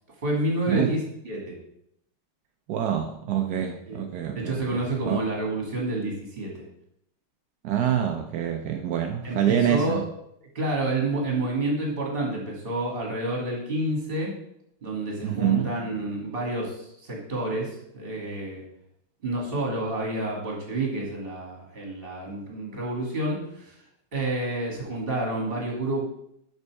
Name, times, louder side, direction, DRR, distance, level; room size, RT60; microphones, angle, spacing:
voice 1, 0.2-1.5 3.9-4.0 4.4-6.6 9.2-10.0 10.5-14.3 14.8-18.6 19.2-23.7 24.1-26.1, right 1 dB, 30° right, -1 dB, 1.9 m, -29 dB
voice 2, 2.7-5.3 7.6-10.0 15.2-15.7, right 10 dB, 75° right, 4 dB, 0.9 m, -26 dB
6.2 x 5.4 x 4.6 m, 0.76 s
omnidirectional pair, 2.3 m